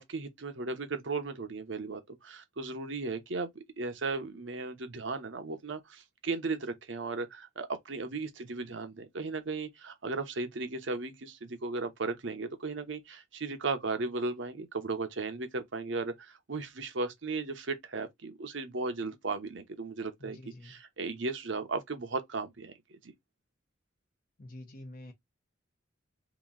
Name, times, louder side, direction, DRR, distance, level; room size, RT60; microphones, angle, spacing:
voice 1, 0.0-20.4 20.6-23.1, right 3 dB, 65° right, 0.9 m, -36 dB
voice 2, 20.2-20.7 24.4-25.1, left 1 dB, 45° left, 0.9 m, -47 dB
3.0 x 2.7 x 3.8 m
head